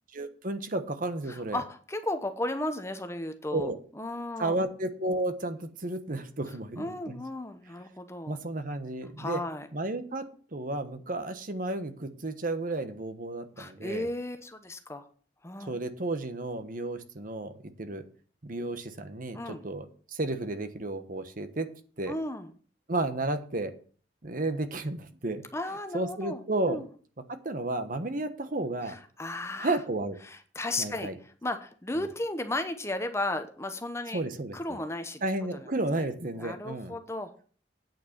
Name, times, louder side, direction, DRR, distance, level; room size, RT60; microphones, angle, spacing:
voice 1, 0.1-1.6 3.5-3.8 4.4-7.2 8.3-9.4 9.7-10.2 10.5-14.1 15.6-17.5 17.8-18.0 18.4-21.7 22.0-22.1 22.9-23.7 24.2-25.4 25.9-26.8 27.4-29.0 29.6-30.2 30.8-31.2 34.1-34.8 35.2-37.0, right 2 dB, 50° right, 9 dB, 1.2 m, -32 dB
voice 2, 1.3-4.6 6.8-8.4 9.2-9.7 13.6-15.1 15.4-15.8 19.3-19.6 22.1-22.5 25.5-26.4 26.7-26.9 28.8-29.8 30.2-34.2 34.5-35.2 35.5-35.7 36.3-37.3, left 2 dB, 15° left, 8 dB, 0.9 m, -34 dB
9.0 x 5.7 x 7.3 m, 0.42 s
head